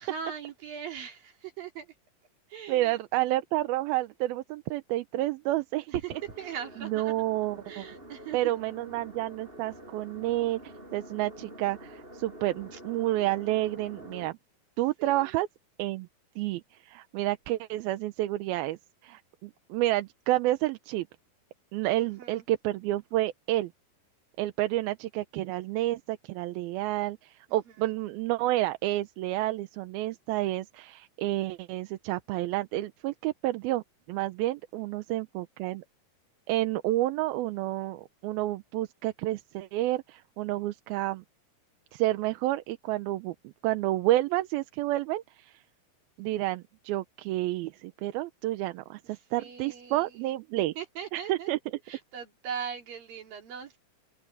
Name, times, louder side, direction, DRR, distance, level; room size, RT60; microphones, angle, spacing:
voice 1, 0.0-1.9 2.5-3.0 5.9-7.1 7.7-8.5 12.7-12.8 15.0-15.3 22.0-22.4 27.5-27.9 49.1-50.3 50.8-51.5 51.9-53.8, right 7 dB, 70° right, 5.0 m, -40 dB
voice 2, 2.7-5.9 6.8-7.9 8.3-14.3 14.8-15.5 15.8-16.1 16.4-21.1 21.7-23.7 24.4-33.8 34.1-35.8 36.5-41.2 41.9-45.6 46.2-50.7 51.1-51.6, right 16 dB, 90° right, 2.7 m, -30 dB
sound 1, 6.1-14.3, equal, 15° right, 6.0 m, -48 dB
open air
omnidirectional pair, 4.2 m